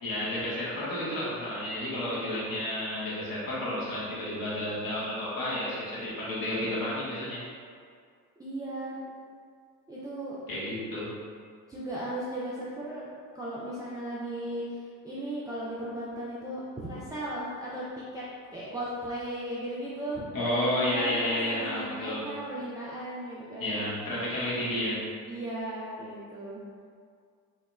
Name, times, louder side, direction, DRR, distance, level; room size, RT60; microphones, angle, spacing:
voice 1, 0.0-7.4 10.5-11.1 20.3-22.2 23.6-25.0, left 1 dB, 45° left, -8 dB, 1.2 m, -31 dB
voice 2, 8.4-9.1 9.9-10.4 11.7-17.8 18.1-18.3 18.5-20.3 20.9-23.8 25.3-26.6, right 1 dB, 10° right, -9 dB, 0.3 m, -36 dB
2.9 x 2.7 x 2.2 m, 2.1 s
hypercardioid pair, 50°, 48 cm